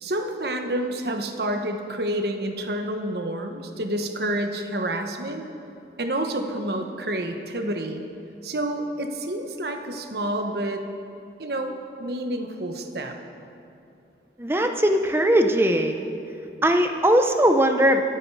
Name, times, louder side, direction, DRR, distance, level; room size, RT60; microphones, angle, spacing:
voice 1, 0.0-5.4 6.0-8.0 8.4-10.8 11.4-13.1, right 1 dB, 65° right, 4 dB, 1.2 m, -29 dB
voice 2, 14.4-16.0 16.6-18.0, right 1 dB, 15° right, 5 dB, 0.8 m, -20 dB
24.5 x 9.1 x 4.8 m, 2.8 s
head